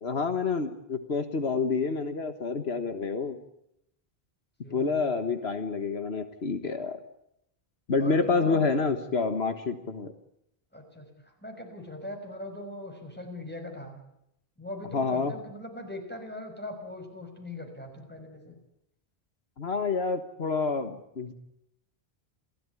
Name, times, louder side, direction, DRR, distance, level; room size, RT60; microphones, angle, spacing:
voice 1, 0.0-3.4 4.7-7.0 7.9-10.1 14.9-15.3 19.6-21.3, left 4 dB, 75° left, 8 dB, 1.7 m, -28 dB
voice 2, 4.6-5.2 8.0-8.7 10.7-11.1 11.4-14.0 14.6-18.6, left 1 dB, 10° left, 4 dB, 6.1 m, -40 dB
28.0 x 17.0 x 9.9 m, 0.81 s
omnidirectional pair, 1.1 m